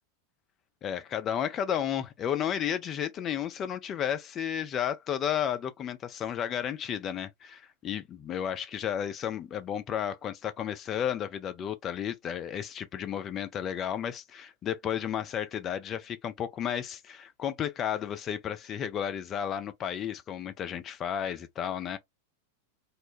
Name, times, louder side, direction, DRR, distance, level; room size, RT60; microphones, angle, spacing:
voice 1, 0.8-22.0, left 9 dB, 30° left, 0.4 m, -33 dB
2.5 x 2.1 x 3.1 m
figure-of-eight pair, 90°, 0 cm